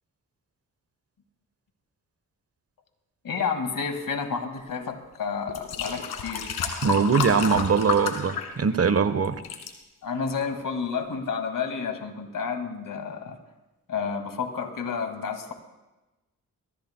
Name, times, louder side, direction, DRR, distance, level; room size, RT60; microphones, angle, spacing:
voice 1, 3.2-6.5 10.0-13.4 13.9-15.5, left 5 dB, 60° left, 6 dB, 2.1 m, -30 dB
sound 1, 4.9-5.0 5.5-9.0 9.2-9.7 10.4-10.5, left 7 dB, 85° left, 1.6 m, -31 dB
voice 2, 6.8-9.4, right 6 dB, 40° right, 12 dB, 1.1 m, -22 dB
22.0 x 14.5 x 2.2 m, 1.0 s
supercardioid pair, 40°, 37 cm